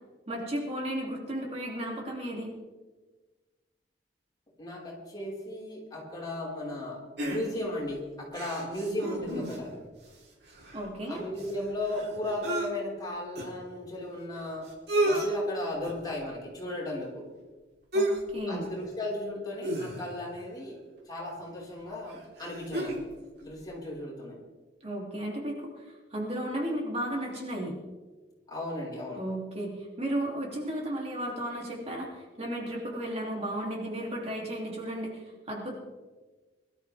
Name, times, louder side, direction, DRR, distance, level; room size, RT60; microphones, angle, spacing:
voice 1, 0.3-2.5 10.7-11.2 17.9-18.6 24.8-25.8 26.1-27.8 29.2-35.7, right 1 dB, 35° right, -2 dB, 2.9 m, -34 dB
voice 2, 4.6-9.7 11.1-14.7 15.0-17.2 18.5-20.8 21.0-23.0 23.4-24.4 28.5-29.2, left 1 dB, 25° left, -4 dB, 5.0 m, -35 dB
sound 1, 7.2-7.8 8.3-9.8 10.1-10.2 10.4-12.7 13.4-13.5 14.3-14.4 14.7-15.3 15.8-16.1 17.9-18.3 18.6-18.8 19.6-20.3 21.4-21.5 22.1-23.1 23.4-23.5, right 1 dB, 65° right, 3.9 m, -32 dB
23.5 x 13.0 x 3.5 m, 1.3 s
head